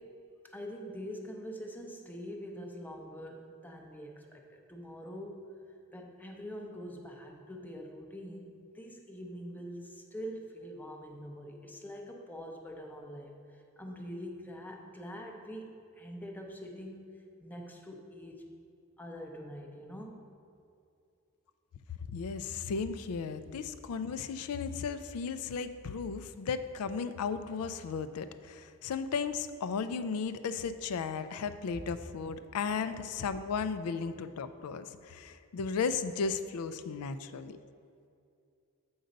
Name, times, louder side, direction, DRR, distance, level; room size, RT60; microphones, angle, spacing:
voice 1, 0.0-5.5 5.9-18.5 19.0-20.2, equal, 10° left, 1 dB, 0.6 m, -44 dB
voice 2, 22.1-37.6, left 5 dB, 75° left, 11 dB, 0.4 m, -35 dB
7.8 x 4.0 x 5.1 m, 2.5 s
head